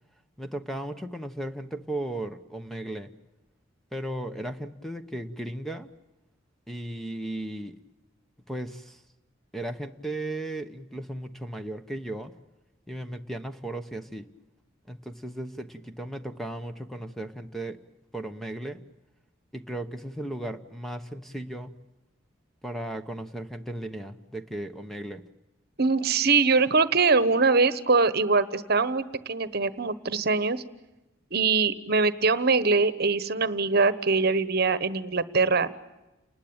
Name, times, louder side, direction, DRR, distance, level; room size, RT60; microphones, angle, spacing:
voice 1, 0.4-3.1 3.9-5.9 6.7-7.8 8.5-9.0 9.5-12.3 12.9-14.3 14.9-17.8 18.1-18.8 19.5-21.8 22.6-25.3, right 1 dB, ahead, 7 dB, 1.0 m, -36 dB
voice 2, 25.8-30.6 31.3-35.7, right 4 dB, 50° right, 14 dB, 1.2 m, -23 dB
29.5 x 20.0 x 8.8 m, 1.0 s
head